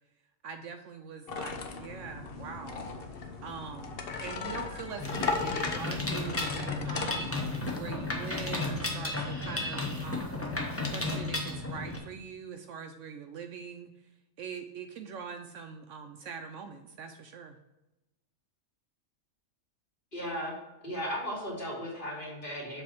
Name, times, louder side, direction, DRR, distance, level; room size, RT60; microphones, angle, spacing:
voice 1, 0.4-2.9 3.4-7.3 7.7-10.5 10.9-14.1 14.4-17.6, right 6 dB, 70° right, 6 dB, 0.8 m, -43 dB
sound 1, 1.3-7.8, left 5 dB, 55° left, 0.8 m, -37 dB
Bird, 4.5-10.0, equal, 5° right, 2.1 m, -53 dB
Mechanisms, 5.0-12.0, left 2 dB, 10° left, 0.8 m, -33 dB
voice 2, 20.1-20.6 20.8-22.8, equal, 35° left, -5 dB, 2.6 m, -36 dB
7.3 x 3.4 x 5.8 m, 1.0 s
omnidirectional pair, 1.5 m